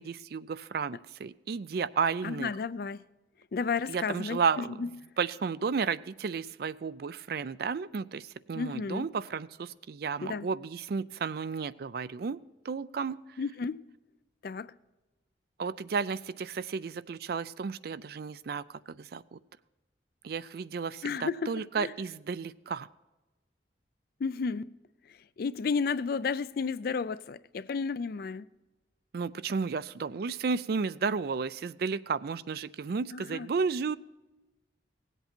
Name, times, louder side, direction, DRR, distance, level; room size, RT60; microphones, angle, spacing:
voice 1, 0.0-2.5 3.9-4.9 5.2-12.4 12.6-13.2 15.6-19.4 20.2-22.9 29.1-34.0, right 5 dB, 55° right, 0.4 m, -33 dB
voice 2, 2.2-3.0 3.5-4.9 8.5-9.1 10.2-10.5 13.4-13.8 14.4-14.7 21.0-21.9 24.2-24.7 25.1-28.5 33.1-33.5, left 5 dB, 55° left, 0.4 m, -33 dB
18.0 x 8.1 x 4.4 m
head